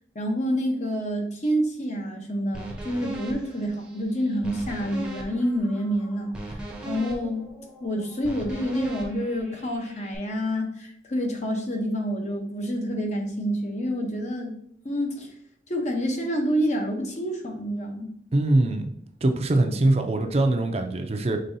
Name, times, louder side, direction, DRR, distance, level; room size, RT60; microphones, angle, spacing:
voice 1, 0.1-6.6 6.8-7.5 7.8-14.5 14.8-15.3 15.7-18.1, equal, 40° left, 2 dB, 0.8 m, -28 dB
sound 1, 2.5-10.2, right 1 dB, 5° right, 0.7 m, -38 dB
voice 2, 18.3-18.9 19.2-21.4, right 2 dB, 35° right, 6 dB, 0.5 m, -22 dB
5.3 x 3.5 x 2.7 m, 0.68 s
head